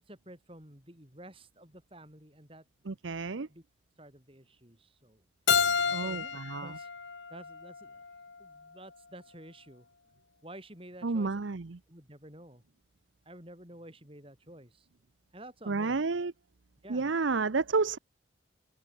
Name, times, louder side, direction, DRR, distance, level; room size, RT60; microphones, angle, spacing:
voice 1, 0.0-2.6 3.5-3.6 4.0-5.2 5.8-6.9 7.3-9.9 10.4-11.6 11.9-12.6 13.3-14.9 15.3-16.0 16.8-17.1, right 1 dB, 30° right, 7.0 m, -51 dB
voice 2, 2.9-3.5 5.9-6.2 6.5-6.7 11.0-11.8 15.7-16.3 16.9-18.0, right 4 dB, 80° right, 0.7 m, -30 dB
Keyboard (musical), 5.5-8.3, left 6 dB, 75° left, 1.4 m, -30 dB
open air
head